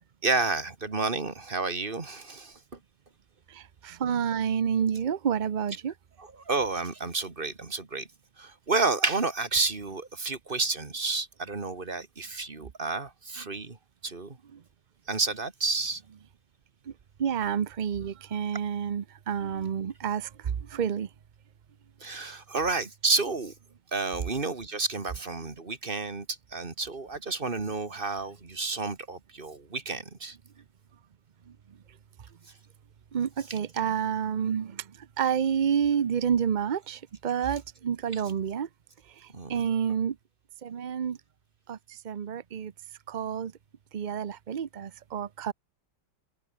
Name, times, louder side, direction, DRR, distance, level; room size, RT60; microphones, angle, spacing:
voice 1, 0.2-2.8 6.2-8.1 8.4-13.8 14.0-14.4 15.1-16.0 22.0-23.5 23.9-30.4 33.5-33.6 38.1-38.2 39.3-39.6, right 3 dB, 30° right, 2.2 m, -30 dB
voice 2, 3.5-5.9 12.6-12.7 17.2-20.3 20.7-21.1 33.1-34.8 35.2-38.7 39.5-40.1 40.6-41.2 41.7-41.8 42.0-42.7 43.1-43.5 43.9-45.5, right 8 dB, 70° right, 0.4 m, -29 dB
open air
omnidirectional pair, 1.9 m